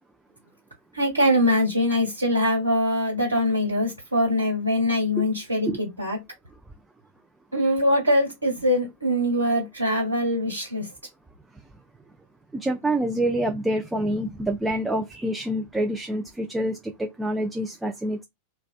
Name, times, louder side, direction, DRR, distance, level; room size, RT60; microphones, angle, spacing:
voice 1, 0.9-6.2 7.5-10.9, left 1 dB, 80° right, 1.2 m, -23 dB
voice 2, 12.5-18.2, right 1 dB, 5° right, 0.3 m, -27 dB
2.4 x 2.2 x 2.3 m
figure-of-eight pair, 90°, 0 cm